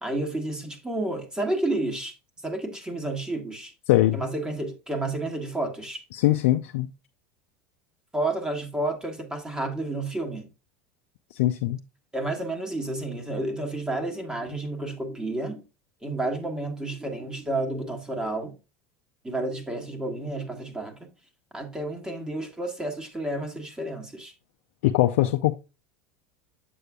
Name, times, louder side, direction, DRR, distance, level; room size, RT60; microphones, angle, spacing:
voice 1, 0.0-2.1 2.4-3.7 4.1-6.0 8.1-10.5 12.1-15.6 16.0-18.5 19.2-21.1 21.5-24.3, right 2 dB, 10° right, 1.5 m, -30 dB
voice 2, 3.9-4.2 6.1-6.9 11.3-11.8 24.8-25.6, left 15 dB, 75° left, 0.4 m, -21 dB
7.6 x 6.5 x 2.3 m
supercardioid pair, 100°, 7 cm